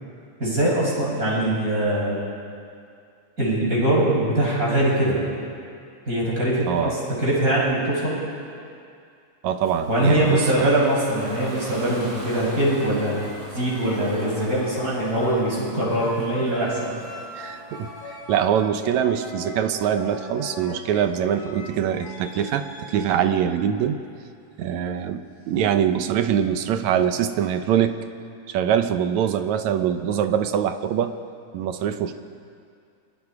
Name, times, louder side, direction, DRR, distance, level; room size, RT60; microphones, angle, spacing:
voice 1, 0.4-2.2 3.4-5.2 6.1-8.2 9.9-13.2 13.5-16.9, right 1 dB, 25° right, -6 dB, 7.9 m, -22 dB
voice 2, 9.4-10.7 17.4-24.0 24.6-28.0 28.5-31.1 31.5-32.1, right 9 dB, 75° right, 8 dB, 2.3 m, -23 dB
Ocean, 9.6-18.4, right 1 dB, 50° right, 6.1 m, -42 dB
sound 1, 12.2-23.5 24.7-25.0, left 1 dB, 50° left, 4.6 m, -40 dB
29.5 x 24.0 x 4.8 m, 2.3 s
omnidirectional pair, 3.4 m